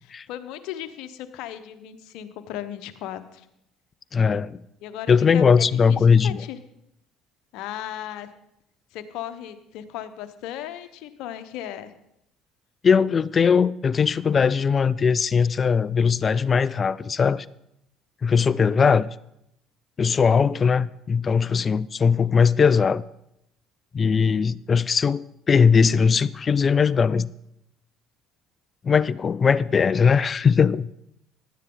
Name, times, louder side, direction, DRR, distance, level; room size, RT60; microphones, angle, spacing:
voice 1, 0.0-3.5 4.8-6.0 6.2-6.6 7.5-8.3 8.9-11.9 18.6-19.0, left 11 dB, 70° left, 1.0 m, -36 dB
voice 2, 4.1-4.6 5.1-6.4 12.8-17.5 18.2-19.1 20.0-23.0 23.9-27.3 28.8-30.9, left 6 dB, 35° left, 0.4 m, -20 dB
15.0 x 11.0 x 3.9 m
hypercardioid pair, 70°, 0 cm